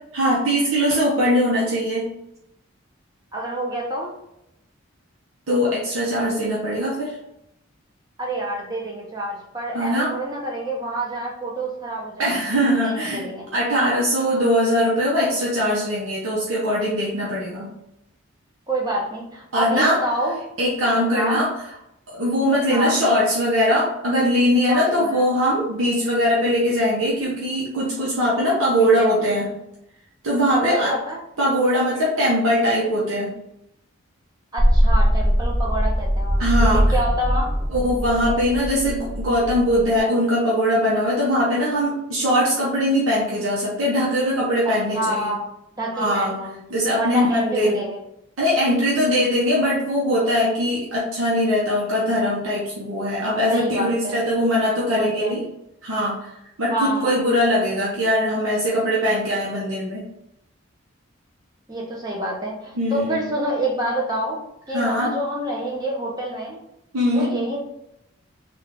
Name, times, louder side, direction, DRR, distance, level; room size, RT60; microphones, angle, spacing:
voice 1, 0.1-2.1 5.5-7.2 9.7-10.1 12.2-17.7 19.5-20.0 20.6-21.5 22.1-29.5 30.2-30.9 31.4-33.4 36.4-36.9 37.7-45.3 45.9-46.3 46.7-47.8 48.4-55.4 55.8-56.3 56.6-60.1 62.8-63.3 64.7-65.1 66.9-67.3, equal, 80° right, -6 dB, 0.8 m, -21 dB
voice 2, 3.3-4.1 8.2-12.3 12.8-13.5 18.7-20.4 21.1-21.4 22.7-23.0 24.7-25.2 28.8-29.1 30.5-31.2 34.5-37.5 44.6-45.4 45.8-46.6 47.0-48.0 53.5-54.2 54.9-55.3 56.7-57.1 61.7-66.6 67.1-67.6, right 1 dB, 20° right, -2 dB, 0.7 m, -27 dB
sound 1, 34.6-40.0, equal, 5° left, 0.3 m, -21 dB
3.4 x 2.4 x 3.5 m, 0.83 s
head